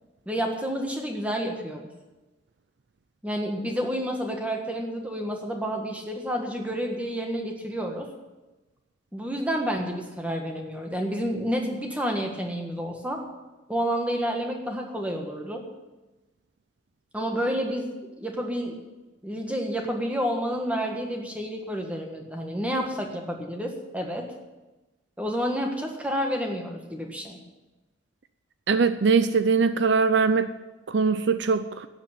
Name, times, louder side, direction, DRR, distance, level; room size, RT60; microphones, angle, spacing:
voice 1, 0.2-1.9 3.2-8.1 9.1-13.2 13.7-15.6 17.1-17.9 18.2-18.8 19.2-24.3 25.2-27.4, equal, 5° right, 2 dB, 1.5 m, -29 dB
voice 2, 28.7-30.5 30.9-31.9, right 5 dB, 65° right, 12 dB, 0.5 m, -22 dB
12.0 x 8.1 x 8.9 m, 1.1 s
head